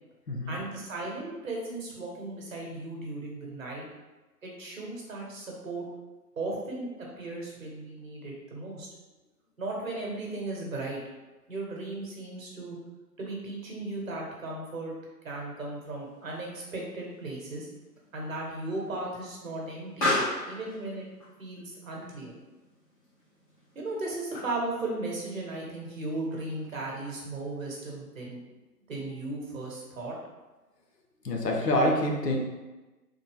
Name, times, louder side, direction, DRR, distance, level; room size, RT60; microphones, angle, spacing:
voice 1, 0.5-3.8 4.4-5.9 6.4-8.9 9.6-11.0 11.5-12.8 13.2-14.9 15.2-17.7 18.1-20.2 20.4-21.1 21.4-22.3 23.7-28.4 28.9-30.2, right 2 dB, 55° right, -2 dB, 1.2 m, -36 dB
Explosion, 15.8-24.8, left 2 dB, 30° left, 1.3 m, -37 dB
voice 2, 31.2-32.4, left 1 dB, 75° left, 1 dB, 0.9 m, -26 dB
3.4 x 2.3 x 3.5 m, 1.2 s
figure-of-eight pair, 145°, 49 cm